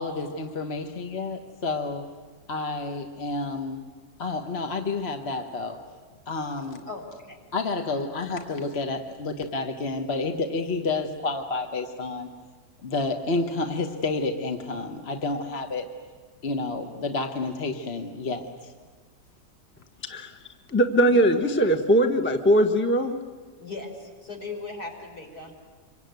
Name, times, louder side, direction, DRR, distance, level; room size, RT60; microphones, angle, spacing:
voice 1, 0.0-2.1 2.5-3.8 4.2-5.9 6.3-6.9 7.5-12.3 12.8-15.9 16.4-18.7, left 3 dB, 40° left, 5 dB, 1.3 m, -30 dB
voice 2, 6.8-7.4 8.1-8.2 21.0-21.4 23.6-25.5, left 3 dB, 65° left, 1 dB, 5.3 m, -38 dB
voice 3, 20.0-20.4 20.7-23.1, right 1 dB, 10° left, 6 dB, 1.1 m, -21 dB
26.5 x 24.0 x 9.3 m, 1.5 s
omnidirectional pair, 1.8 m